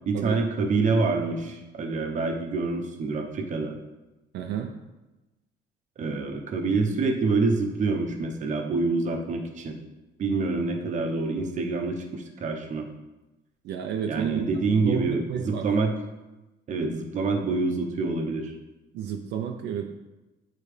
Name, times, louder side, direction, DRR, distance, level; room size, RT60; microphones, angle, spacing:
voice 1, 0.1-3.8 6.0-9.8 10.2-12.9 14.1-15.9 16.7-18.5, right 3 dB, 40° right, 3 dB, 0.9 m, -26 dB
voice 2, 4.3-4.7 13.6-14.4 14.8-15.7 18.9-19.9, right 8 dB, 70° right, 3 dB, 0.6 m, -30 dB
8.8 x 4.2 x 3.3 m, 1.0 s
cardioid pair, 145°, 18 cm